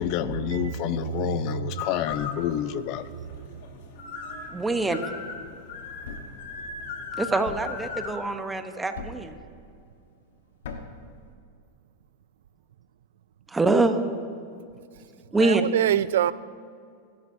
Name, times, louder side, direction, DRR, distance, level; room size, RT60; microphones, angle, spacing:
voice 1, 0.0-3.0, left 10 dB, 50° left, 13 dB, 0.6 m, -28 dB
voice 2, 0.5-1.6 15.4-16.3, right 11 dB, 80° right, 17 dB, 0.3 m, -26 dB
sound 1, 1.8-8.2, left 5 dB, 65° left, 1.9 m, -38 dB
voice 3, 4.5-5.1 7.2-9.4 13.5-14.1 15.3-15.7, right 2 dB, 10° right, 7 dB, 1.0 m, -24 dB
Thump thud, 6.0-6.4 7.5-7.8 9.0-9.4 10.6-11.0, left 4 dB, 80° left, 1.4 m, -39 dB
25.0 x 12.5 x 2.7 m, 2.3 s
supercardioid pair, 130°, 0 cm